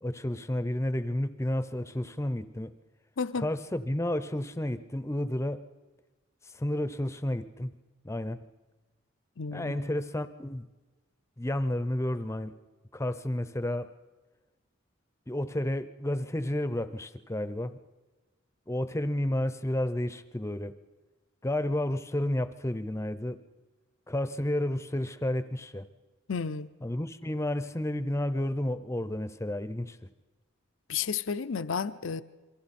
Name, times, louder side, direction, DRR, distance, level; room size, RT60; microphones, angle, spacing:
voice 1, 0.0-2.7 3.4-5.6 6.5-7.7 8.0-8.4 9.5-10.6 11.4-12.6 12.9-13.9 15.3-17.8 18.7-20.8 21.4-23.4 24.1-25.9 26.8-30.0, left 1 dB, 15° left, 0.7 m, -31 dB
voice 2, 3.2-3.5 9.4-9.8 26.3-26.7 30.9-32.2, left 6 dB, 65° left, 0.6 m, -32 dB
28.0 x 23.0 x 4.3 m
head